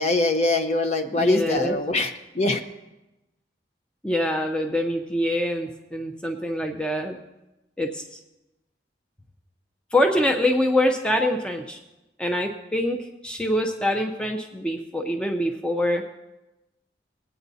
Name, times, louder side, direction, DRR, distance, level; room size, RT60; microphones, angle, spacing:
voice 1, 0.0-2.6, left 2 dB, 40° left, 6 dB, 0.8 m, -23 dB
voice 2, 1.1-1.8 4.0-7.2 7.8-8.2 9.9-11.8 12.2-16.0, left 1 dB, 5° left, 4 dB, 0.5 m, -25 dB
19.5 x 8.9 x 2.7 m, 1.0 s
head